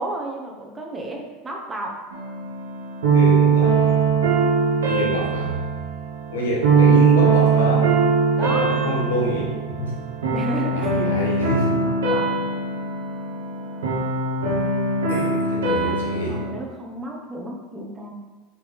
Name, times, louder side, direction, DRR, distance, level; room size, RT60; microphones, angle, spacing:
voice 1, 0.0-2.0 8.4-9.1 10.2-11.0 11.9-12.3 15.7-15.9 16.3-18.1, right 1 dB, 20° right, 0 dB, 1.2 m, -32 dB
sound 1, 2.1-16.5, right 5 dB, 85° right, 1.4 m, -21 dB
voice 2, 3.1-4.0 4.8-5.6 6.3-7.9 8.4-10.0 10.7-11.9 15.1-16.4, left 1 dB, 85° left, -2 dB, 1.5 m, -27 dB
5.7 x 4.7 x 3.6 m, 1.3 s
hypercardioid pair, 95°, 0 cm